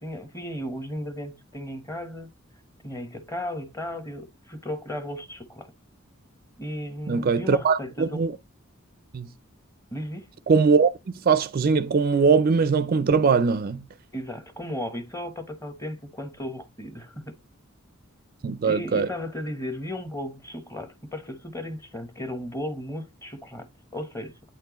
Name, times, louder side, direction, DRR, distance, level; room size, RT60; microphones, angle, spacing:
voice 1, 0.0-2.3 2.8-5.7 6.6-8.2 9.9-10.3 14.1-17.4 18.6-23.7 23.9-24.3, left 1 dB, 15° left, 1.0 m, -35 dB
voice 2, 7.1-8.3 9.1-9.3 10.5-10.9 11.3-13.8 18.4-19.1, right 5 dB, 45° right, 0.4 m, -21 dB
8.7 x 4.5 x 2.9 m
head